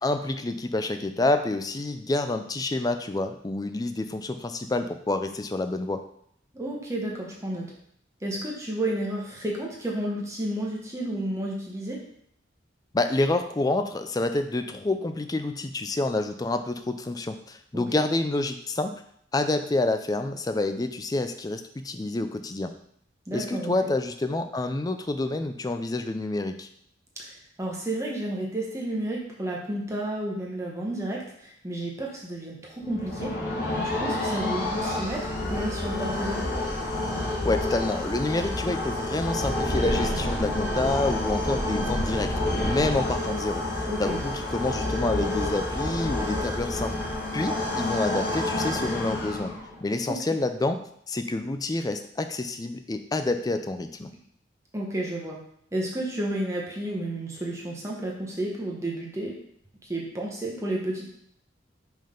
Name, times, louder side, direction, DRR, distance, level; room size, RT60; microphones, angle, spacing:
voice 1, 0.0-6.0 12.9-18.9 19.3-22.7 23.3-26.7 37.4-42.3 42.6-47.0 47.3-49.5 49.8-50.8 51.1-54.1, left 2 dB, 20° left, 8 dB, 0.4 m, -28 dB
voice 2, 6.5-7.7 8.2-12.0 17.7-18.0 23.3-23.7 27.2-33.3 33.8-36.5 43.9-44.2 50.1-50.2 54.7-55.4 55.7-59.4 59.8-61.1, right 1 dB, 15° right, -2 dB, 1.0 m, -31 dB
sound 1, 32.8-49.8, left 1 dB, 50° left, 1.5 m, -29 dB
5.4 x 3.8 x 5.1 m, 0.69 s
head